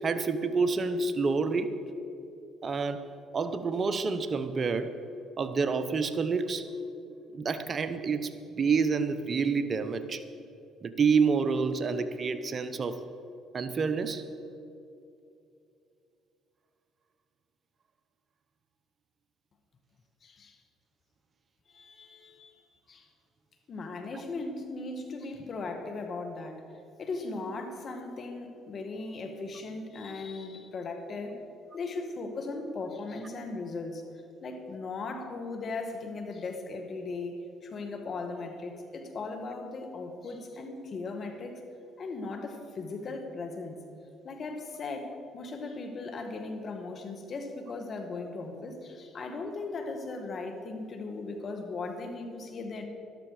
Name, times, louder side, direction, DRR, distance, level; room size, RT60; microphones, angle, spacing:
voice 1, 0.0-1.7 2.6-3.0 3.3-5.0 5.4-6.7 7.3-10.2 10.8-13.0 13.5-14.3, right 5 dB, 45° right, 11 dB, 0.9 m, -28 dB
voice 2, 20.2-20.6 21.7-23.1 23.7-26.6 27.0-31.4 31.7-34.0 34.4-41.6 42.0-43.8 44.2-52.8, left 3 dB, 50° left, 5 dB, 2.0 m, -38 dB
13.0 x 12.5 x 5.0 m, 2.7 s
supercardioid pair, 65°, 0 cm